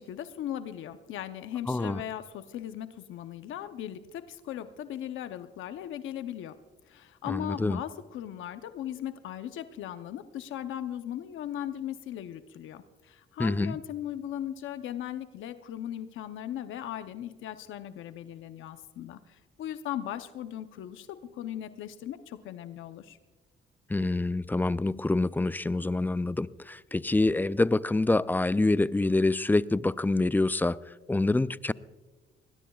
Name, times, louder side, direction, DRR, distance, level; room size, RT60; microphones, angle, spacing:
voice 1, 0.0-6.6 6.9-23.2, left 11 dB, 80° left, 0.7 m, -38 dB
voice 2, 1.7-2.0 7.3-7.8 13.4-13.8 23.9-30.8 31.1-31.7, left 2 dB, 10° left, 0.4 m, -26 dB
21.0 x 19.0 x 2.3 m
cardioid pair, 90°, 20 cm